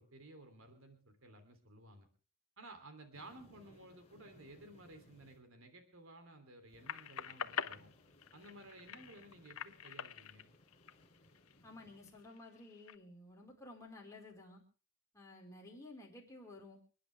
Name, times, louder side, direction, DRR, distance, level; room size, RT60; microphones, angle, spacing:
voice 1, 0.0-2.1 2.6-7.9 8.3-10.5, right 1 dB, 65° right, 7 dB, 3.2 m, -56 dB
sound 1, 3.1-5.4 6.7-12.3, left 1 dB, 30° left, 3.2 m, -65 dB
sound 2, 6.9-11.6 12.1-13.0, left 7 dB, 75° left, 0.8 m, -45 dB
voice 2, 11.6-14.6 15.1-16.8, left 2 dB, 15° left, -1 dB, 4.8 m, -53 dB
29.0 x 10.0 x 3.5 m, 0.37 s
head